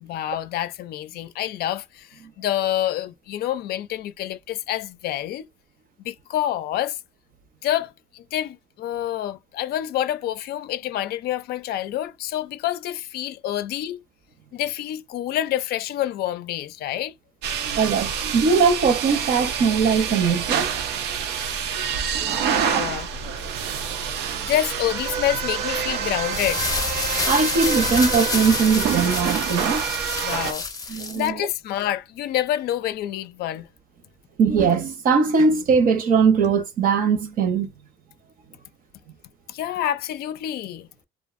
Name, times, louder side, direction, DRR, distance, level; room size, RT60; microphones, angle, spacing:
voice 1, 0.0-5.4 6.0-7.0 7.6-14.0 14.5-17.1 22.2-23.1 24.3-26.6 30.2-30.7 31.1-33.7 39.5-40.9, left 12 dB, 70° left, 0.4 m, -27 dB
sound 1, 17.4-30.5, right 7 dB, 85° right, 0.6 m, -27 dB
voice 2, 17.8-20.7 27.2-29.8 30.9-31.4 34.4-37.7, right 5 dB, 55° right, 0.8 m, -20 dB
sound 2, 26.1-31.3, left 4 dB, 20° left, 0.6 m, -28 dB
2.6 x 2.3 x 2.4 m
cardioid pair, 110°, 17 cm